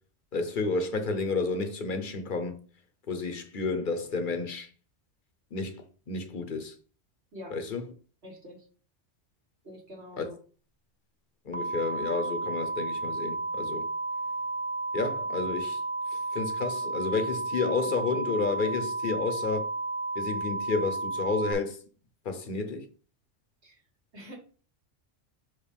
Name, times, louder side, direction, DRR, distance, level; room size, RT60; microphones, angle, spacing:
voice 1, 0.3-2.6 3.1-4.7 5.5-6.7 7.5-7.8 10.2-10.3 11.5-13.9 14.9-15.8 16.3-19.7 20.1-21.8 22.2-22.9, left 4 dB, 45° left, 1.0 m, -31 dB
voice 2, 8.2-8.7 9.6-10.3 23.6-23.8 24.1-24.4, equal, 60° right, 2.2 m, -45 dB
sound 1, 11.5-21.5, right 3 dB, 10° left, 0.5 m, -32 dB
6.0 x 4.8 x 3.4 m
omnidirectional pair, 1.3 m